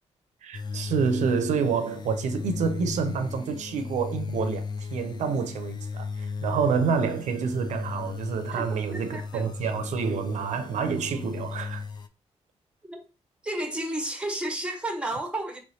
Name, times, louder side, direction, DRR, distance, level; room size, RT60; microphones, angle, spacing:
voice 1, 0.4-11.8, right 5 dB, 80° right, 0.4 m, -28 dB
sound 1, 0.5-12.1, left 5 dB, 40° left, 0.3 m, -36 dB
voice 2, 8.9-9.4 12.8-13.0 13.4-15.6, right 1 dB, 10° right, 0.8 m, -32 dB
3.1 x 3.1 x 2.7 m
cardioid pair, 90°, 12 cm